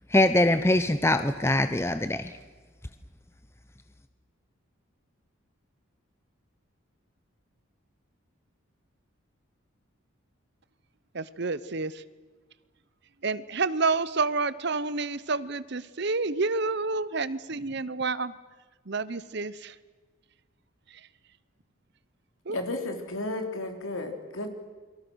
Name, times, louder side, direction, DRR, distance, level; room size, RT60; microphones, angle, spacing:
voice 1, 0.1-2.3, left 1 dB, 10° left, 11 dB, 0.7 m, -23 dB
voice 2, 11.1-11.9 13.2-18.3 18.9-19.7 22.5-22.6, right 3 dB, 50° right, 17 dB, 0.8 m, -29 dB
voice 3, 22.5-24.5, left 2 dB, 70° left, 5 dB, 3.5 m, -33 dB
29.0 x 24.0 x 6.4 m, 1.4 s
head